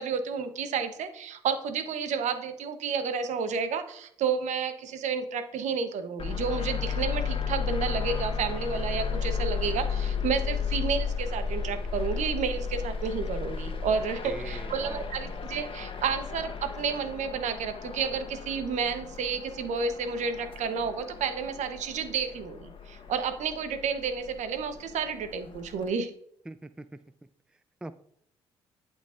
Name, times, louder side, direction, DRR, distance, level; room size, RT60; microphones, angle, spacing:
voice 1, 0.0-26.1, right 6 dB, 60° right, 9 dB, 1.0 m, -31 dB
sound 1, 6.2-25.9, left 6 dB, 40° left, 1.1 m, -34 dB
voice 2, 14.2-15.1 26.5-26.9 27.8-27.9, right 2 dB, 5° right, 12 dB, 0.4 m, -41 dB
11.5 x 4.0 x 2.5 m, 0.69 s
hypercardioid pair, 50°, 13 cm